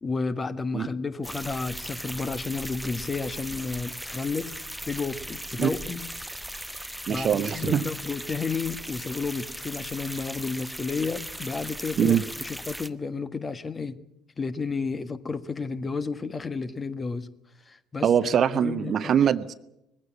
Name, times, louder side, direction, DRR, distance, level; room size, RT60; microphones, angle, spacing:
voice 1, 0.0-4.5 4.9-6.0 7.1-14.0 14.4-17.3 17.7-19.1, left 4 dB, 25° left, 12 dB, 1.4 m, -32 dB
sound 1, 1.2-12.9, equal, ahead, 1.0 m, -38 dB
voice 2, 7.1-7.8 12.0-12.2 18.0-19.5, right 8 dB, 45° right, 14 dB, 0.9 m, -23 dB
21.0 x 15.5 x 9.8 m, 0.84 s
figure-of-eight pair, 55°, 0 cm